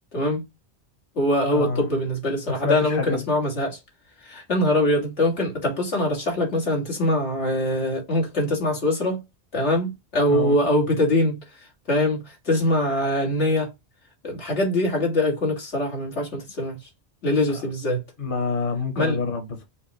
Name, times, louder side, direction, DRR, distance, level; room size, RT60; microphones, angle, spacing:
voice 1, 0.1-0.4 1.2-3.8 4.2-9.2 9.5-11.4 11.9-13.7 14.2-16.8 17.2-18.0 19.0-19.2, left 1 dB, 85° left, 2.2 m, -23 dB
voice 2, 1.5-1.8 2.6-3.2 10.3-10.6 17.5-17.6 18.2-19.6, left 4 dB, 50° left, 1.3 m, -27 dB
5.8 x 2.2 x 4.1 m
omnidirectional pair, 1.1 m